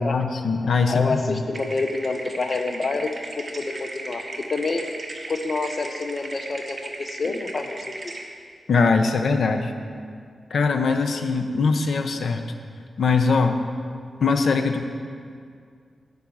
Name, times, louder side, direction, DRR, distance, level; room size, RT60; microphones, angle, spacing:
voice 1, 0.0-1.4 7.2-7.3 8.7-9.7 10.5-12.4 13.0-13.6 14.2-14.8, left 4 dB, 80° left, 6 dB, 0.8 m, -21 dB
voice 2, 0.9-3.1 3.4-4.8 5.3-7.9, left 3 dB, 45° left, 5 dB, 0.9 m, -27 dB
sound 1, 1.5-8.2, right 2 dB, 35° right, 1.3 m, -37 dB
11.0 x 5.3 x 8.6 m, 2.2 s
wide cardioid pair, 100°, 0 cm